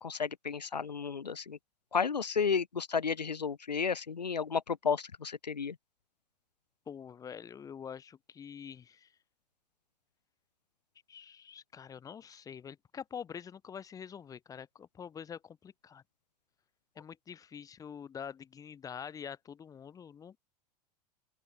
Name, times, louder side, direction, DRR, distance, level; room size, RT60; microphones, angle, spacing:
voice 1, 0.0-1.6 1.9-5.8, left 6 dB, 90° left, 0.6 m, -32 dB
voice 2, 6.9-9.1 11.1-16.0 17.0-20.4, left 7 dB, 15° left, 0.5 m, -46 dB
open air
figure-of-eight pair, 85°, 21 cm